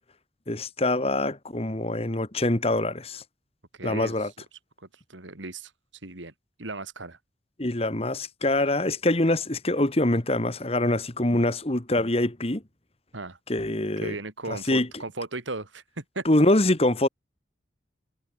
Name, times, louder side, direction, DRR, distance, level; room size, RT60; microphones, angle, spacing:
voice 1, 0.5-3.2 3.8-4.3 7.6-12.6 13.5-14.2 14.5-14.9 16.3-17.1, left 1 dB, 30° left, 1.7 m, -24 dB
voice 2, 3.7-4.3 4.8-5.7 6.0-6.3 6.6-7.2 13.1-13.4 14.0-16.2, right 2 dB, 90° right, 3.2 m, -36 dB
head